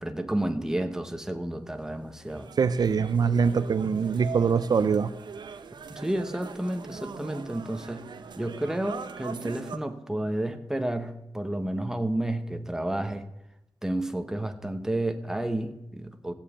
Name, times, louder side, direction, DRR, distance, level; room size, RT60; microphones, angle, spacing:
voice 1, 0.0-2.5 5.9-8.1 8.4-13.2 13.8-16.3, right 1 dB, 5° right, 7 dB, 1.1 m, -31 dB
sound 1, 1.8-9.8, right 5 dB, 90° right, 0.9 m, -41 dB
voice 2, 2.6-5.1, right 6 dB, 65° right, 13 dB, 0.5 m, -23 dB
15.5 x 7.3 x 8.5 m, 0.87 s
wide cardioid pair, 145°, 7 cm